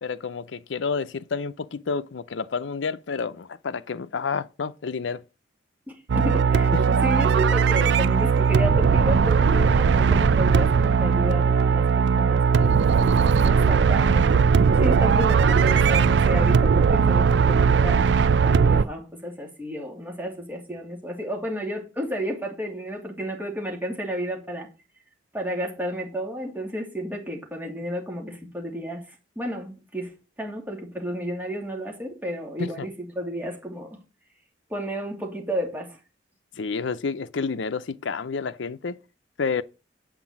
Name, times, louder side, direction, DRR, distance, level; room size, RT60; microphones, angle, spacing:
voice 1, 0.0-5.2 6.7-6.8 32.6-32.9 36.6-39.0 39.4-39.6, left 5 dB, 85° left, 0.6 m, -29 dB
voice 2, 5.9-12.8 13.3-14.4 14.8-24.7 25.3-34.0 34.7-36.0, equal, 10° right, 2.7 m, -32 dB
sound 1, 6.1-18.8, right 5 dB, 70° right, 0.4 m, -19 dB
8.6 x 6.0 x 7.2 m
head